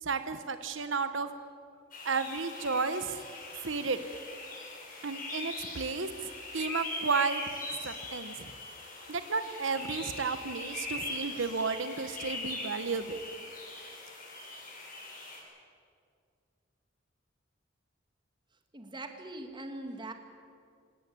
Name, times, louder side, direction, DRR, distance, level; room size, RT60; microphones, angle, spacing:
voice 1, 0.0-1.3 2.0-3.2 3.6-4.0 5.0-6.1 6.5-7.4 7.7-8.5 9.1-13.2, right 4 dB, 80° right, 10 dB, 1.2 m, -32 dB
sound 1, 1.9-15.4, left 2 dB, 45° left, 6.0 m, -41 dB
voice 2, 18.7-20.1, right 2 dB, 25° right, 6 dB, 2.1 m, -41 dB
26.0 x 17.5 x 8.6 m, 2.3 s
head